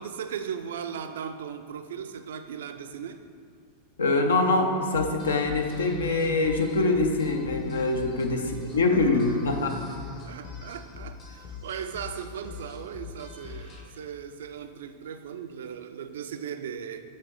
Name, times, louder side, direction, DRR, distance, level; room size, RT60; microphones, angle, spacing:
voice 1, 0.0-3.2 8.3-9.4 10.2-17.0, right 7 dB, 60° right, 9 dB, 0.3 m, -38 dB
voice 2, 4.0-9.8, left 3 dB, 65° left, 5 dB, 0.6 m, -24 dB
sound 1, 4.9-13.8, left 6 dB, 40° left, 1.0 m, -43 dB
7.2 x 3.8 x 3.9 m, 2.3 s
figure-of-eight pair, 90°, 0 cm